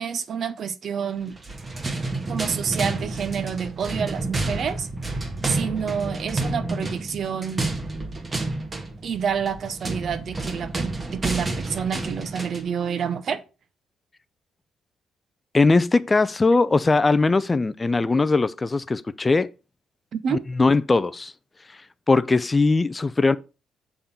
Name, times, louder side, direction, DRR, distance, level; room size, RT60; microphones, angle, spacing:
voice 1, 0.0-1.4 2.3-4.9 5.5-7.7 9.0-13.4 20.1-20.4, right 7 dB, 55° right, 0.8 m, -28 dB
sound 1, 1.3-12.7, right 2 dB, 30° right, 1.3 m, -30 dB
voice 2, 15.5-19.5 20.3-21.3 22.1-23.4, left 3 dB, 25° left, 0.4 m, -20 dB
6.9 x 3.8 x 5.7 m
cardioid pair, 90°, 0 cm